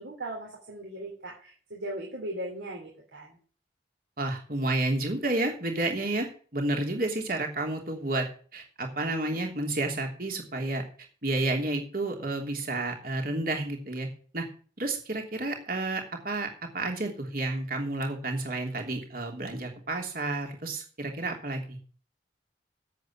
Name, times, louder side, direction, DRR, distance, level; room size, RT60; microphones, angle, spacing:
voice 1, 0.0-3.4, right 1 dB, 80° right, -2 dB, 3.4 m, -38 dB
voice 2, 4.2-8.3 8.5-10.8 11.2-14.1 14.3-14.5 14.8-16.5 16.7-21.8, right 2 dB, 50° right, 2 dB, 3.1 m, -30 dB
8.3 x 8.0 x 8.8 m, 0.42 s
head